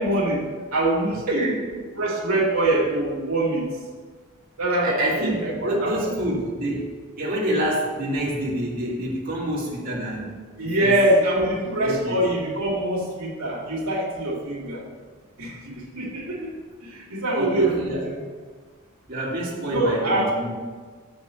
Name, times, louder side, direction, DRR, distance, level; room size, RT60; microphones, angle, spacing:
voice 1, 0.0-1.3 2.0-3.7 4.6-6.4 10.6-14.8 15.4-16.5 16.8-18.2 19.7-20.3, right 1 dB, 75° right, -4 dB, 2.0 m, -24 dB
voice 2, 1.3-1.8 4.8-6.9 7.2-10.3 10.6-11.0 11.8-12.2 17.3-18.0 19.1-20.5, right 1 dB, 45° right, -6 dB, 1.9 m, -27 dB
6.7 x 5.3 x 6.6 m, 1.5 s
head